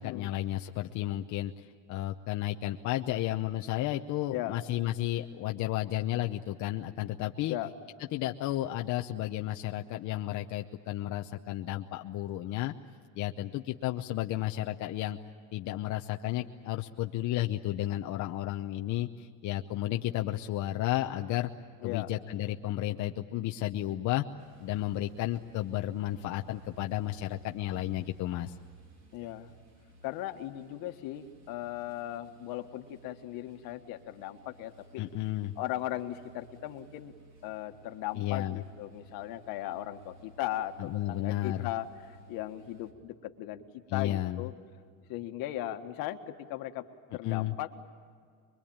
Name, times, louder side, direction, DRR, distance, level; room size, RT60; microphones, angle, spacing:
voice 1, 0.0-7.6 8.1-12.7 13.1-15.2 15.5-21.5 21.8-24.3 24.6-28.6 35.0-35.5 38.1-38.6 40.8-41.7 43.9-44.4 47.2-47.5, left 14 dB, 55° left, 4 dB, 0.8 m, -32 dB
sound 1, 24.4-42.9, right 3 dB, 50° right, 3.7 m, -56 dB
voice 2, 29.1-29.5 30.0-35.0 35.6-37.1 37.4-43.6 43.9-44.5 45.1-46.8 47.1-47.7, left 14 dB, 75° left, 7 dB, 1.6 m, -37 dB
24.0 x 23.5 x 8.8 m, 2.1 s
cardioid pair, 160°, 35 cm